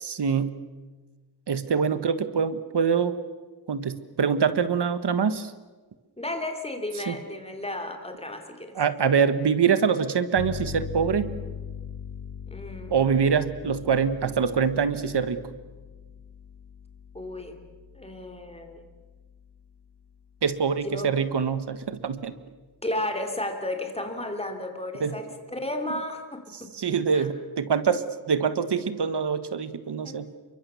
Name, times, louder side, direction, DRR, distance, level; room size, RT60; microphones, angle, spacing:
voice 1, 0.1-0.5 1.5-3.2 3.7-5.5 7.1-7.2 8.7-11.3 12.9-15.4 20.4-22.3 25.0-25.1 26.7-30.3, right 6 dB, 80° right, 12 dB, 1.5 m, -24 dB
voice 2, 6.2-8.8 12.5-13.0 17.1-17.6 17.9-18.8 20.8-21.1 22.8-26.7 27.1-27.3 30.0-30.2, left 1 dB, 15° left, 4 dB, 3.2 m, -33 dB
sound 1, 10.4-19.6, left 6 dB, 70° left, 1.4 m, -41 dB
28.5 x 24.0 x 7.0 m, 1.3 s
wide cardioid pair, 120°, 40 cm